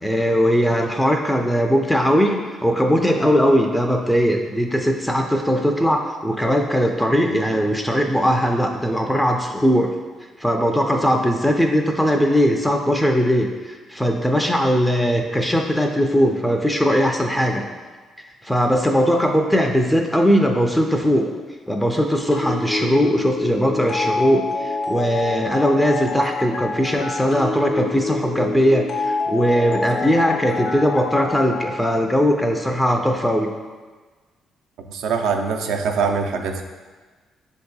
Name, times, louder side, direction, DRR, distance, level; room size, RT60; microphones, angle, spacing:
voice 1, 0.0-9.9 10.4-17.6 18.4-21.3 21.7-33.5, equal, 5° left, 2 dB, 0.4 m, -19 dB
sound 1, 22.3-31.7, left 3 dB, 65° left, 0.6 m, -27 dB
voice 2, 34.9-36.6, right 5 dB, 85° right, 4 dB, 0.4 m, -23 dB
7.2 x 2.7 x 2.3 m, 1.4 s
cardioid pair, 90°, 0 cm